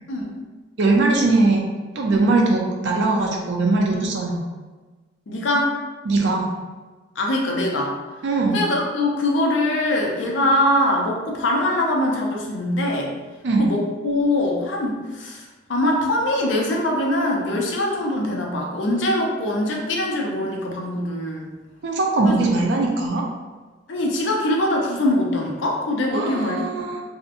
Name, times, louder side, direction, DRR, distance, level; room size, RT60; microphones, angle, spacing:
voice 1, 0.8-1.6 2.0-4.4 6.1-6.5 8.2-8.6 13.4-13.7 21.8-23.2 26.1-27.0, right 3 dB, 65° right, 0 dB, 0.5 m, -20 dB
voice 2, 5.3-5.8 7.2-7.9 8.5-13.1 13.6-21.5 22.2-22.5 23.9-26.7, left 1 dB, 80° left, -1 dB, 0.5 m, -23 dB
2.7 x 2.1 x 2.5 m, 1.3 s
head